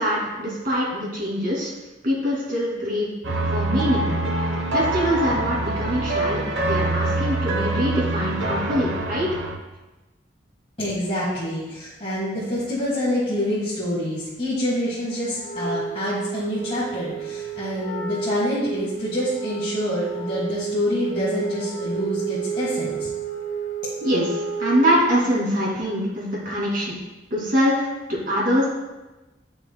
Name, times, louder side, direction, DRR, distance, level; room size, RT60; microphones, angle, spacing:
voice 1, 0.0-1.7 2.0-3.1 3.5-4.1 4.7-9.3 24.0-26.9 27.3-27.8 28.1-28.7, equal, 50° right, -5 dB, 2.5 m, -23 dB
sound 1, 3.2-9.6, right 2 dB, 85° right, 1.0 m, -25 dB
voice 2, 10.8-23.1, left 1 dB, 30° left, -9 dB, 1.7 m, -26 dB
Wind instrument woodwind instrument, 15.3-25.1, right 6 dB, 85° left, 1.5 m, -31 dB
10.5 x 6.1 x 2.2 m, 1.1 s
head